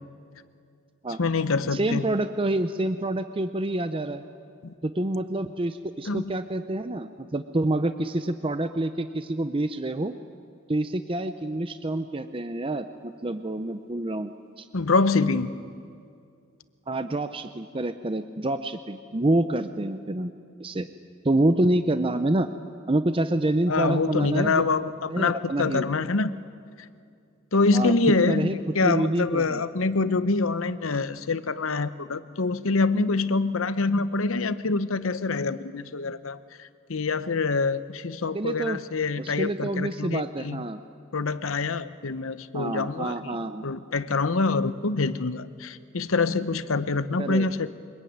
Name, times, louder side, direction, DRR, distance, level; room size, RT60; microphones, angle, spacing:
voice 1, 1.2-2.0 4.6-4.7 6.1-6.2 14.7-15.5 23.7-26.3 27.5-40.6 41.1-43.4 43.6-47.7, left 3 dB, 75° left, 14 dB, 0.9 m, -25 dB
voice 2, 1.7-4.2 4.8-10.1 10.7-14.3 14.6-14.7 16.9-20.3 20.6-20.9 21.2-22.5 22.9-24.7 25.1-25.9 27.7-27.9 28.3-28.6 28.8-29.6 38.3-38.8 39.2-40.8 42.5-43.6 47.2-47.5, right 1 dB, 25° right, 9 dB, 0.6 m, -27 dB
24.5 x 21.0 x 9.4 m, 2.4 s
head